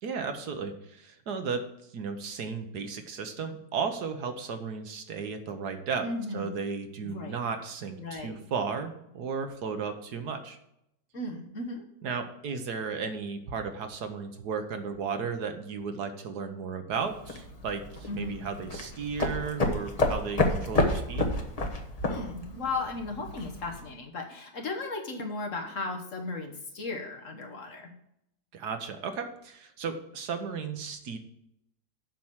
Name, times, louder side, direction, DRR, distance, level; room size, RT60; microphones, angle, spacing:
voice 1, 0.0-1.6 1.9-6.0 6.3-10.6 12.0-21.2 28.5-31.2, right 5 dB, 65° right, 7 dB, 1.4 m, -34 dB
voice 2, 6.0-6.5 7.0-7.4 8.0-8.4 11.1-11.8 18.1-18.4 22.0-27.9, left 3 dB, 50° left, 2 dB, 1.3 m, -36 dB
sound 1, 16.9-23.8, left 2 dB, 25° left, 0.9 m, -30 dB
7.5 x 5.9 x 7.3 m, 0.79 s
omnidirectional pair, 2.0 m